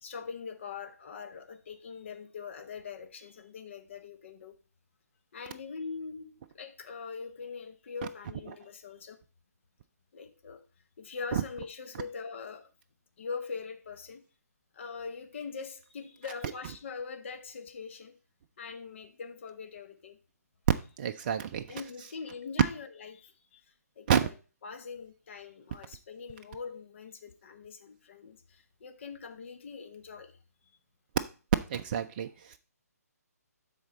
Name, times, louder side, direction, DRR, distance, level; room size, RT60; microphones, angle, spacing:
voice 1, 0.0-4.6 5.3-9.2 10.1-10.6 11.0-12.7 13.2-14.2 14.7-18.2 18.6-20.2 21.7-23.6 24.0-24.3 24.6-30.4, left 5 dB, 45° left, 1.0 m, -42 dB
voice 2, 21.0-21.7 24.1-24.3 31.7-32.6, right 8 dB, 35° right, 0.4 m, -29 dB
12.0 x 4.1 x 4.0 m
figure-of-eight pair, 135°, 9 cm